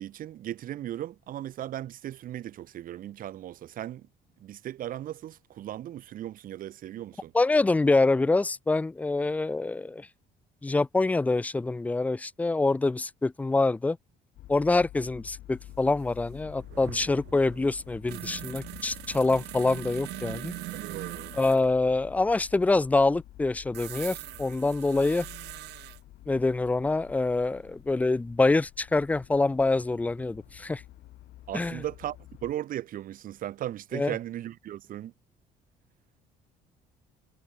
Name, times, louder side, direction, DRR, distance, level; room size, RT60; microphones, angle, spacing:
voice 1, 0.0-4.1 4.4-7.3 20.7-21.4 31.5-35.1, right 12 dB, 55° right, 0.7 m, -37 dB
voice 2, 7.3-10.1 10.6-14.0 14.5-20.5 21.4-25.3 26.3-30.8 31.5-31.8 33.9-34.1, left 3 dB, 10° left, 0.3 m, -25 dB
sound 1, 14.3-32.5, left 15 dB, 75° left, 3.4 m, -49 dB
sound 2, 15.7-15.8 16.0-21.7 23.7-26.0 28.2-28.3 29.8-30.5 30.8-30.9, right 18 dB, 80° right, 1.1 m, -42 dB
cardioid pair, 110°, 17 cm